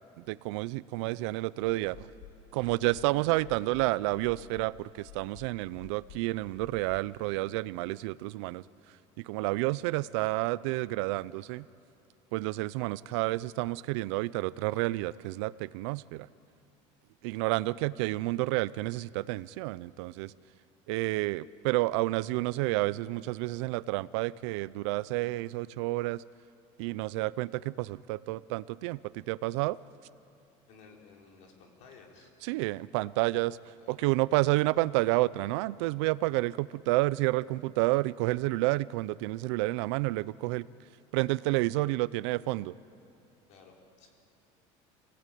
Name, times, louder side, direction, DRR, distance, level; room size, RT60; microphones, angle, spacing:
voice 1, 0.2-2.1 2.5-8.6 9.2-11.6 12.3-16.3 17.2-20.3 20.9-26.2 26.8-29.8 32.4-33.6 33.9-40.7 41.1-42.7, right 19 dB, 85° right, 19 dB, 0.6 m, -30 dB
sound 1, 1.6-7.1, left 6 dB, 85° left, 2.1 m, -53 dB
voice 2, 30.7-32.3 33.8-34.1 43.5-44.1, left 5 dB, 55° left, 1 dB, 4.6 m, -55 dB
27.5 x 18.0 x 9.3 m, 2.8 s
cardioid pair, 165°, 14 cm